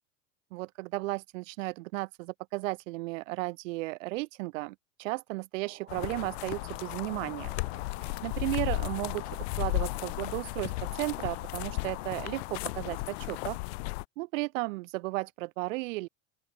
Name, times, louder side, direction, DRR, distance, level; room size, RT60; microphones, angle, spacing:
voice 1, 0.5-7.5 8.0-13.6 14.2-16.1, right 22 dB, 75° right, 0.5 m, -34 dB
sound 1, 5.6-12.5, right 9 dB, 25° right, 6.2 m, -54 dB
sound 2, 5.9-14.0, left 25 dB, 55° left, 0.4 m, -35 dB
open air
supercardioid pair, 160°, 39 cm